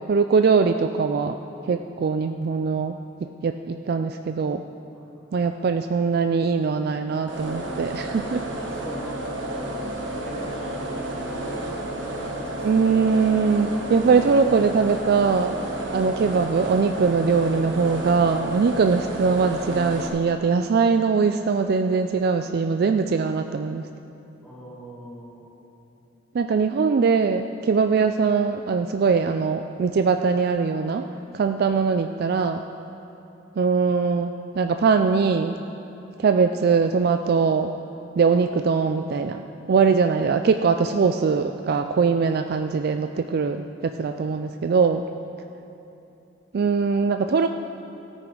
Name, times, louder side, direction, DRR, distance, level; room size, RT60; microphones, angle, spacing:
voice 1, 0.1-1.4 1.7-3.0 3.4-4.6 5.3-8.4 12.6-15.6 15.9-23.8 26.3-31.0 31.3-32.6 33.6-35.6 36.2-37.7 38.2-39.4 39.7-45.0 46.5-47.5, right 5 dB, 55° right, 7 dB, 0.3 m, -21 dB
sound 1, 7.3-20.1, right 1 dB, 75° right, 1.4 m, -31 dB
voice 2, 8.6-9.2 9.5-9.9 10.2-12.7 24.4-25.5, equal, 5° left, -9 dB, 3.1 m, -42 dB
16.5 x 9.1 x 3.9 m, 2.9 s
head